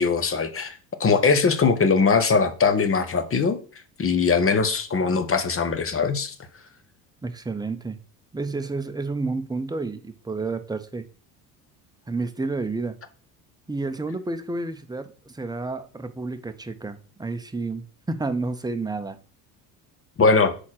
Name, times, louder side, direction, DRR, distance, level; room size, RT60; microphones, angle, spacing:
voice 1, 0.0-3.6 4.0-6.3 20.2-20.5, left 4 dB, 30° left, 1.0 m, -21 dB
voice 2, 7.2-8.0 8.3-11.1 12.1-13.0 13.7-19.2, right 3 dB, 10° right, 0.8 m, -30 dB
5.0 x 4.2 x 5.8 m
hypercardioid pair, 70°, 46 cm